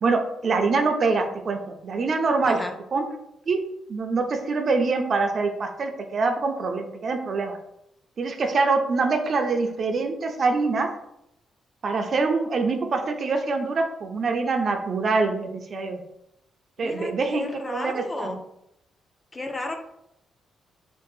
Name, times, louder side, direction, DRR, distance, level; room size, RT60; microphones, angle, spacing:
voice 1, 0.0-2.6 2.9-3.0 3.5-3.6 3.9-7.6 8.2-10.9 11.8-16.0 16.8-18.3, right 4 dB, 45° right, 5 dB, 0.4 m, -24 dB
voice 2, 2.4-2.7 16.8-18.4 19.3-19.8, left 2 dB, 20° left, 5 dB, 0.4 m, -33 dB
2.7 x 2.5 x 3.9 m, 0.80 s
cardioid pair, 125°, 0 cm